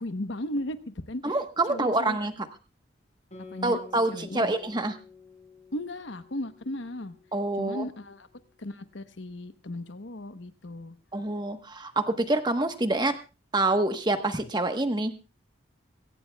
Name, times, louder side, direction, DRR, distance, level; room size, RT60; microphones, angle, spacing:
voice 1, 0.0-1.4 1.7-2.2 3.5-3.8 4.1-4.5 5.7-7.1 7.6-8.3 8.6-11.0, left 1 dB, 70° left, 10 dB, 1.0 m, -36 dB
voice 2, 1.2-2.5 3.6-5.0 7.3-7.9 11.1-13.1 13.5-15.1, right 2 dB, 20° right, 7 dB, 1.2 m, -26 dB
Guitar, 3.3-8.2, left 4 dB, 35° left, 6.6 m, -50 dB
22.5 x 17.5 x 2.3 m, 0.31 s
head